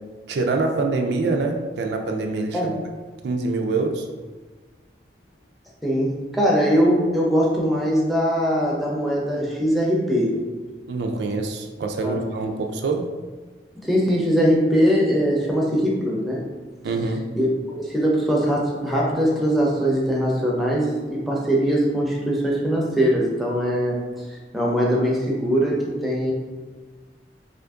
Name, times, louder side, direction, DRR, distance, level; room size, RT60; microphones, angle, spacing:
voice 1, 0.3-2.7 3.2-4.1 10.9-13.0 16.8-17.2, right 3 dB, 75° right, 4 dB, 0.3 m, -25 dB
voice 2, 5.8-10.3 12.0-12.2 13.8-16.4 17.4-24.0 24.5-26.3, equal, ahead, -4 dB, 0.5 m, -21 dB
2.7 x 2.5 x 3.4 m, 1.4 s
head